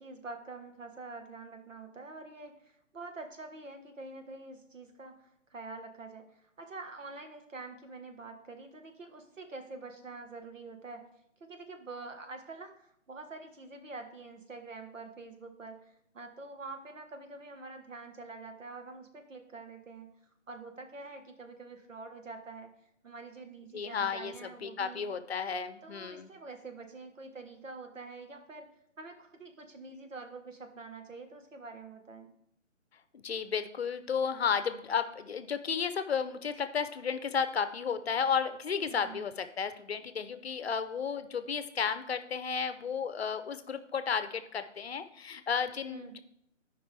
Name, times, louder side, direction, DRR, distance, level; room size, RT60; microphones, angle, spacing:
voice 1, 0.0-11.0 11.4-20.1 20.5-22.7 23.0-25.1 25.8-28.7 29.0-32.3 38.8-39.2 45.9-46.2, right 3 dB, 85° right, 5 dB, 1.5 m, -46 dB
voice 2, 23.7-24.3 24.6-26.3 33.1-46.2, left 6 dB, 55° left, 11 dB, 0.7 m, -33 dB
13.0 x 5.2 x 3.4 m, 0.77 s
hypercardioid pair, 160°, 37 cm